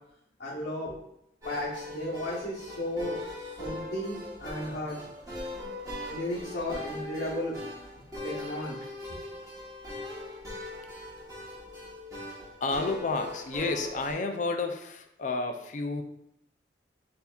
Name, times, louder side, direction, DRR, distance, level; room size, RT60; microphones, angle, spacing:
voice 1, 0.4-1.0 1.4-5.0 6.1-7.5 8.2-8.8 9.1-9.2, left 1 dB, 75° left, -8 dB, 1.0 m, -34 dB
sound 1, 1.4-14.1, left 2 dB, 20° right, 1.2 m, -40 dB
voice 2, 12.6-16.0, left 3 dB, 45° left, 6 dB, 0.4 m, -31 dB
6.8 x 2.7 x 2.4 m, 0.78 s
head